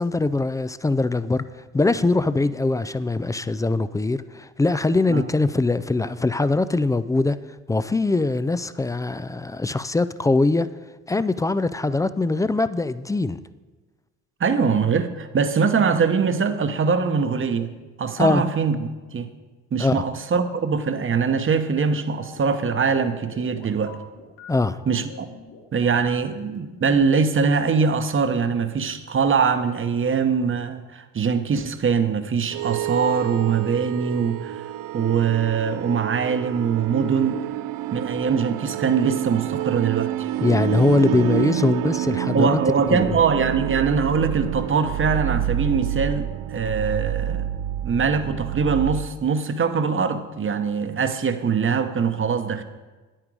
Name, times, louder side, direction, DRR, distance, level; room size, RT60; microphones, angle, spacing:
voice 1, 0.0-1.4 1.7-7.4 7.7-10.7 11.1-13.4 18.2-18.4 19.8-20.0 24.5-24.8 40.4-42.6 42.9-43.2, left 3 dB, 10° left, 0.3 m, -22 dB
voice 2, 14.4-17.7 18.0-19.3 19.7-24.0 24.9-25.3 25.7-34.7 34.9-37.4 37.9-40.3 42.3-47.5 47.8-52.6, right 5 dB, 35° right, 1.0 m, -22 dB
sound 1, 21.8-27.0, left 4 dB, 55° left, 2.6 m, -45 dB
sound 2, 32.5-49.1, right 12 dB, 60° right, 0.5 m, -28 dB
9.6 x 8.9 x 4.7 m
hypercardioid pair, 60°, 38 cm